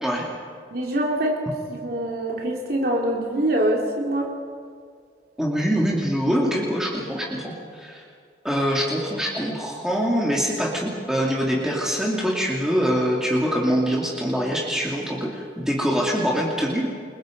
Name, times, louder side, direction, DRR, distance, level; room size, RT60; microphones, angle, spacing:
voice 1, 0.7-1.4 1.7-4.3, right 1 dB, 55° right, -1 dB, 2.9 m, -24 dB
voice 2, 5.4-8.0 8.4-16.9, equal, 5° right, -3 dB, 2.7 m, -24 dB
29.0 x 22.0 x 5.3 m, 2.1 s
head